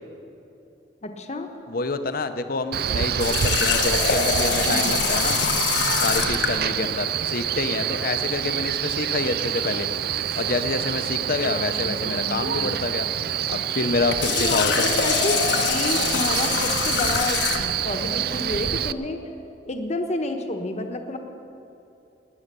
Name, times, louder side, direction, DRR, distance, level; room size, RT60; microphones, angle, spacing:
voice 1, 1.0-1.5 4.6-5.1 6.8-6.9 11.4-12.9 14.3-19.2 19.6-21.2, left 2 dB, 40° left, 5 dB, 1.1 m, -30 dB
voice 2, 1.7-5.4 6.0-9.9 10.4-13.1 13.5-15.0, left 3 dB, 55° left, 10 dB, 0.8 m, -27 dB
Male speech man speaking, 2.7-18.9, right 9 dB, 60° right, 0.4 m, -27 dB
Water tap faucet, 3.2-6.6 14.0-17.8, left 6 dB, 85° left, 1.2 m, -24 dB
18.5 x 9.5 x 6.8 m, 2.8 s
head